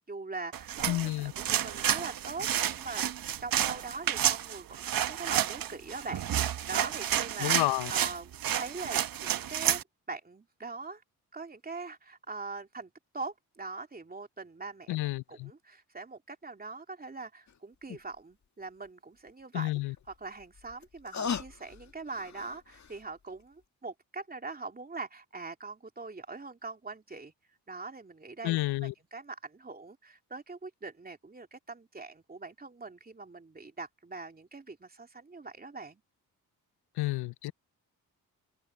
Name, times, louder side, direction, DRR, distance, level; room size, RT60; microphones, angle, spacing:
voice 1, 0.1-3.1 3.4-7.6 7.9-9.8 10.1-11.0 11.3-27.3 27.7-36.0, right 3 dB, 25° right, 2.8 m, -42 dB
sound 1, 0.5-9.8, right 10 dB, 65° right, 1.2 m, -30 dB
voice 2, 0.9-1.3 7.4-7.9 14.9-15.5 19.5-19.9 28.4-28.9 37.0-37.5, left 18 dB, 85° left, 0.7 m, -30 dB
sound 2, 17.5-17.6 17.9-18.0 19.9-23.1 23.4-23.5, left 6 dB, 50° left, 2.0 m, -39 dB
open air
supercardioid pair, 65°, 37 cm